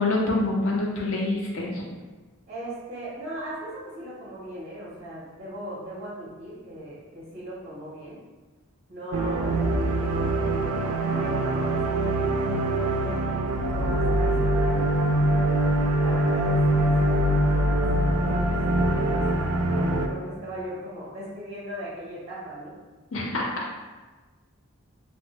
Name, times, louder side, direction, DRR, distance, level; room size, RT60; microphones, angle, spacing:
voice 1, 0.0-1.8 23.1-23.5, left 2 dB, 60° left, -2 dB, 0.6 m, -26 dB
voice 2, 2.5-8.2 8.9-13.2 13.6-14.8 15.9-22.8, equal, 35° right, -8 dB, 0.6 m, -38 dB
sound 1, 9.1-20.1, right 1 dB, 80° right, 0.3 m, -23 dB
3.3 x 2.0 x 2.7 m, 1.3 s
head